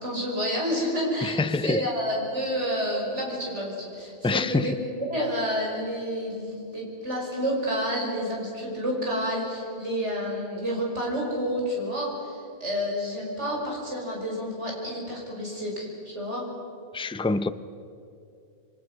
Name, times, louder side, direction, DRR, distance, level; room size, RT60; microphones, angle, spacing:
voice 1, 0.0-16.4, equal, 80° right, 5.8 m, -29 dB
voice 2, 1.2-1.8 4.2-4.7 16.9-17.5, left 3 dB, 10° left, 0.3 m, -25 dB
28.0 x 23.0 x 6.2 m
omnidirectional pair, 1.2 m